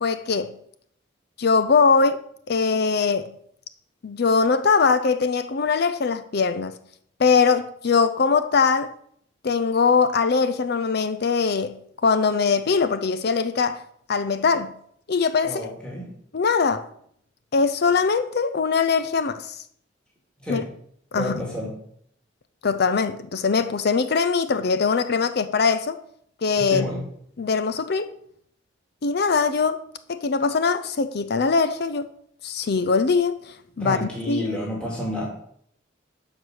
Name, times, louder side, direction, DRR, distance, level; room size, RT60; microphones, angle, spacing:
voice 1, 0.0-0.6 1.4-2.2 2.5-3.3 4.0-6.8 7.2-8.9 9.4-13.8 14.1-14.7 15.1-15.7 16.3-16.9 17.5-19.6 20.5-20.6 21.1-21.4 22.6-26.0 26.4-26.9 27.4-28.1 29.0-32.1 32.4-34.6, left 5 dB, 55° left, 0.5 m, -22 dB
voice 2, 15.4-16.1 20.4-20.7 21.2-21.7 26.6-27.0 33.8-35.2, left 1 dB, 5° left, 2.6 m, -30 dB
12.5 x 4.9 x 6.3 m
head